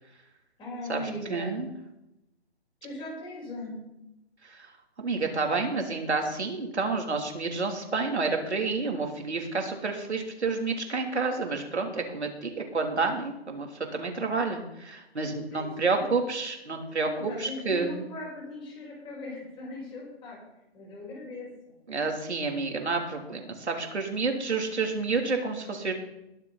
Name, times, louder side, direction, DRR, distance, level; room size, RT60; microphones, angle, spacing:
voice 1, 0.6-1.5 2.8-3.8 15.5-16.0 17.0-20.4 20.7-21.8, left 1 dB, 15° left, -3 dB, 5.3 m, -39 dB
voice 2, 1.3-1.7 4.4-4.7 5.0-18.0 21.9-25.9, right 4 dB, 85° right, 3 dB, 3.2 m, -29 dB
21.0 x 7.6 x 4.1 m, 0.89 s
hypercardioid pair, 145°, 33 cm